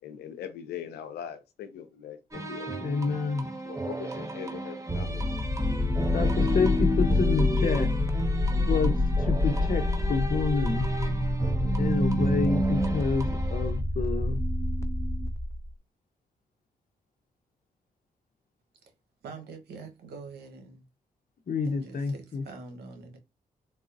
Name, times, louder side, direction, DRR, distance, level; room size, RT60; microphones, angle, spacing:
voice 1, 0.0-2.7 3.6-5.3, left 9 dB, 85° left, 0.6 m, -41 dB
sound 1, 2.3-13.8, right 1 dB, 20° right, 1.1 m, -35 dB
voice 2, 2.8-3.5 6.1-7.9 8.6-8.9 9.2-9.8 10.1-10.9 11.8-14.4 21.5-22.4, left 4 dB, 55° left, 0.9 m, -28 dB
sound 2, 5.1-15.7, left 1 dB, 15° left, 0.9 m, -26 dB
voice 3, 19.2-20.8 21.6-23.2, right 4 dB, 75° right, 1.1 m, -44 dB
4.0 x 2.3 x 2.6 m
supercardioid pair, 45°, 17 cm